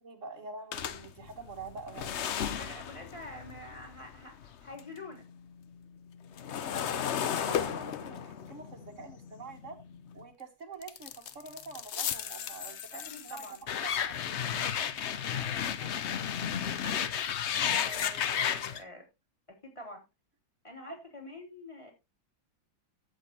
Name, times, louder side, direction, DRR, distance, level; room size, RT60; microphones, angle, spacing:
voice 1, 0.0-2.2 7.0-9.8 10.1-13.5 13.8-14.8, right 4 dB, 40° right, 1.6 m, -46 dB
sound 1, 0.7-5.0 5.3-10.2 10.8-18.8, left 8 dB, 85° left, 0.6 m, -34 dB
voice 2, 2.5-5.3 12.9-13.7 15.1-17.0 17.6-19.1 19.5-20.0 20.6-21.9, left 1 dB, 15° left, 3.2 m, -47 dB
12.5 x 8.1 x 2.8 m
omnidirectional pair, 2.1 m